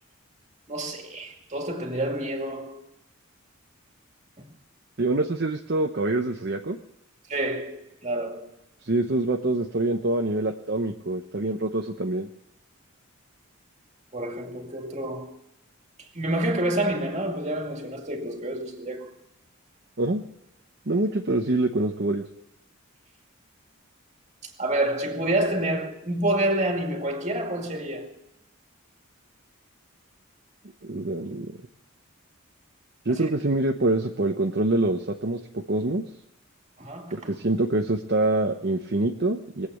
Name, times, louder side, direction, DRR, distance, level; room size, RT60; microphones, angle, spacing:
voice 1, 0.7-2.8 4.4-4.5 7.3-8.5 14.1-15.3 16.1-19.1 24.4-28.2 33.1-33.3 36.8-37.3, right 1 dB, 35° right, 2.3 m, -28 dB
voice 2, 5.0-6.8 8.8-12.3 20.0-20.2 20.9-22.2 30.8-31.5 33.1-35.4 35.7-36.0 37.1-39.7, right 2 dB, 50° right, 0.9 m, -25 dB
20.5 x 8.4 x 8.2 m
head